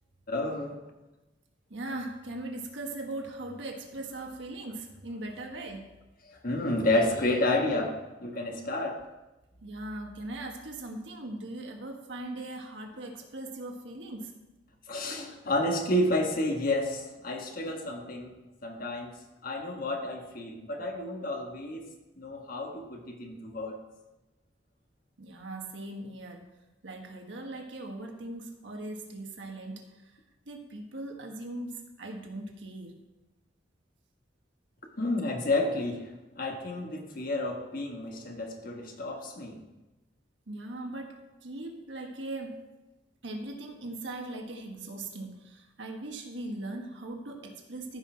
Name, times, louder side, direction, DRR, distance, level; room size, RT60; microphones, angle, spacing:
voice 1, 0.3-0.8 6.3-9.0 14.9-19.2 19.4-23.8 35.0-39.6, left 1 dB, 50° left, 2 dB, 1.4 m, -30 dB
voice 2, 1.7-5.9 9.6-14.3 25.2-26.5 26.8-29.8 30.5-33.0 40.5-42.6 43.2-48.0, right 2 dB, 75° right, 3 dB, 1.4 m, -39 dB
14.5 x 5.6 x 4.4 m, 1.0 s
head